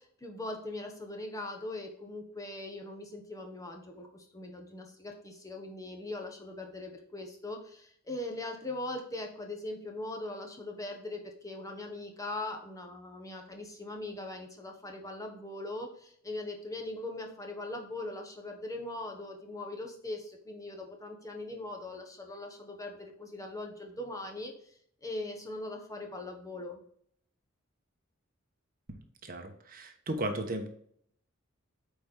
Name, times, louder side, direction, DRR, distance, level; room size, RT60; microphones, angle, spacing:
voice 1, 0.0-24.7 25.0-26.8, left 2 dB, 15° left, 3 dB, 1.2 m, -40 dB
voice 2, 29.2-30.7, right 1 dB, 45° right, 5 dB, 1.1 m, -35 dB
8.4 x 4.3 x 3.8 m, 0.65 s
head